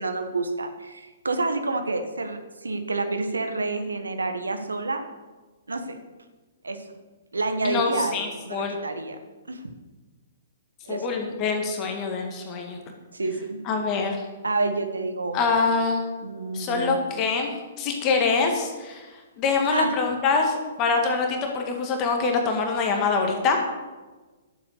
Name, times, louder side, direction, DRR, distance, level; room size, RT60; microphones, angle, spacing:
voice 1, 0.0-5.0 5.7-6.0 6.6-6.8 7.3-9.2 9.5-9.6 10.9-11.1 13.1-13.6 14.4-15.8 16.2-17.0 19.7-19.9, right 3 dB, 75° right, 7 dB, 1.3 m, -28 dB
voice 2, 7.6-8.8 10.9-12.8 13.7-14.2 15.3-16.0 16.5-17.5 17.8-19.1 19.4-23.6, left 4 dB, 30° left, 3 dB, 1.8 m, -24 dB
11.0 x 7.7 x 6.6 m, 1.3 s
figure-of-eight pair, 115°, 0 cm